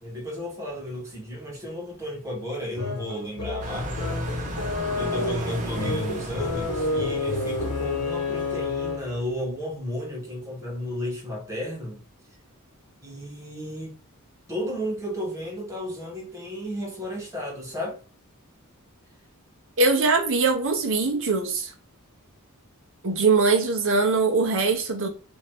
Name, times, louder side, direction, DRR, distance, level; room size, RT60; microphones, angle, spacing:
voice 1, 0.0-4.1 4.9-12.0 13.0-14.0 14.5-18.0, equal, 15° right, 1.4 m, -33 dB
sound 1, 2.8-9.2, left 3 dB, 85° left, 0.9 m, -30 dB
sound 2, 3.6-9.2, equal, 35° right, 0.9 m, -34 dB
voice 2, 19.8-21.7 23.0-25.1, right 4 dB, 60° right, 0.8 m, -22 dB
3.0 x 2.7 x 4.5 m
head